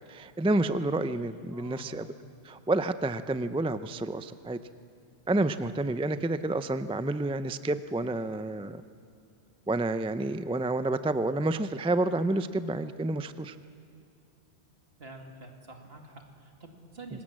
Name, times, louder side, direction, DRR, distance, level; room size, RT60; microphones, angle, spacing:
voice 1, 0.1-2.1 2.4-4.6 5.3-8.8 9.7-13.5 17.1-17.2, right 2 dB, 10° right, 12 dB, 0.3 m, -29 dB
voice 2, 1.5-1.9 15.0-17.2, right 2 dB, 65° right, 3 dB, 2.5 m, -47 dB
25.5 x 19.5 x 7.5 m, 2.5 s
omnidirectional pair, 1.1 m